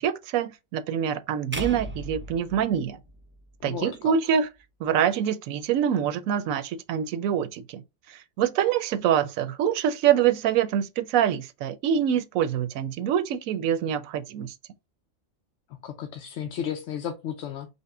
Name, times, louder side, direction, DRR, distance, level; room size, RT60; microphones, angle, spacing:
voice 1, 0.0-3.0 3.6-4.5 4.8-7.8 8.1-14.5, right 9 dB, 80° right, 1.0 m, -25 dB
sound 1, 1.5-3.8, right 1 dB, 15° right, 0.4 m, -37 dB
voice 2, 3.6-4.2 15.8-17.7, left 8 dB, 65° left, 0.9 m, -33 dB
5.3 x 2.1 x 3.6 m
omnidirectional pair, 1.4 m